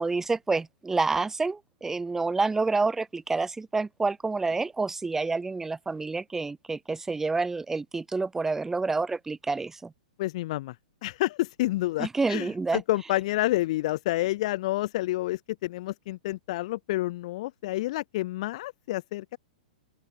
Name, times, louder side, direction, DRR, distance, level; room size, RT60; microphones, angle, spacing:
voice 1, 0.0-9.9 12.0-12.8, right 3 dB, 10° right, 1.4 m, -28 dB
voice 2, 10.2-10.8 11.0-19.4, left 17 dB, 50° left, 2.1 m, -29 dB
open air
figure-of-eight pair, 110°, 4 cm